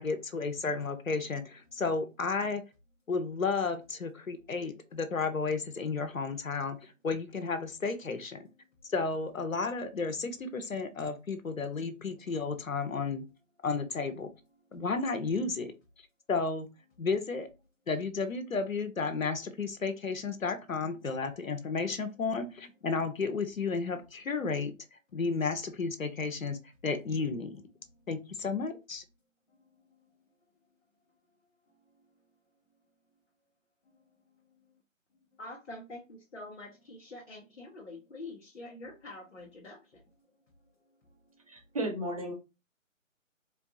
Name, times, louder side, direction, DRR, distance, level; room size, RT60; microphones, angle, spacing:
voice 1, 0.0-2.7 3.1-8.5 8.8-13.2 13.6-14.3 14.7-15.7 16.3-16.7 17.0-17.5 17.9-27.6 28.1-29.0, left 4 dB, 80° left, 9 dB, 0.8 m, -33 dB
voice 2, 35.4-39.8, left 2 dB, 55° left, -2 dB, 1.1 m, -45 dB
voice 3, 41.5-42.3, right 1 dB, 25° right, 1 dB, 0.8 m, -34 dB
4.3 x 2.3 x 2.7 m, 0.27 s
figure-of-eight pair, 145°, 40 cm